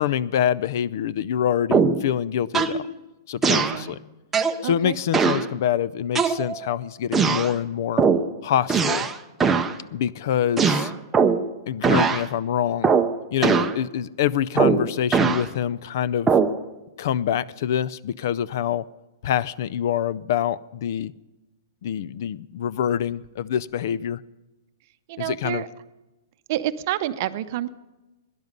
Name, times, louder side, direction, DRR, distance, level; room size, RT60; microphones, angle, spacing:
voice 1, 0.0-2.8 3.3-4.0 4.6-8.0 8.4-9.1 9.9-10.9 11.7-12.9 13.3-16.3 17.0-18.8 19.2-21.1 21.8-24.2 25.2-25.6, left 9 dB, 55° left, 20 dB, 0.4 m, -25 dB
sound 1, 1.7-2.1 2.5-2.8 3.4-3.8 4.3-4.6 5.1-5.5 6.2-6.7 7.1-7.5 8.0-8.3 8.7-9.2 9.4-9.7 10.6-11.5 11.8-12.2 12.8-13.1 13.4-13.8 14.6-15.5 16.3-16.6, right 5 dB, 10° right, 0.6 m, -20 dB
voice 2, 3.6-3.9 4.6-5.0 25.1-25.7 26.5-27.7, right 13 dB, 45° right, 13 dB, 0.7 m, -28 dB
17.0 x 11.0 x 5.4 m, 1.1 s
hypercardioid pair, 160°, 2 cm